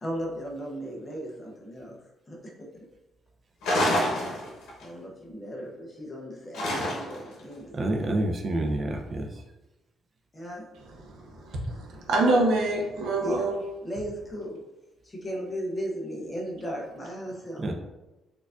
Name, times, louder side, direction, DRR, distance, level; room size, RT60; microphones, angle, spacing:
voice 1, 0.0-2.0 2.3-2.8 4.8-8.1 10.3-10.7 13.2-13.5 13.8-14.6 15.0-17.7, equal, 20° left, 0.6 m, -36 dB
sound 1, 3.6-4.8 6.5-7.3, left 1 dB, 80° left, 0.9 m, -27 dB
voice 2, 7.7-9.4 17.6-17.7, right 1 dB, 30° right, 0.4 m, -28 dB
voice 3, 11.0-13.6, right 2 dB, 70° right, 0.6 m, -26 dB
4.4 x 2.3 x 2.4 m
cardioid pair, 165°, 0 cm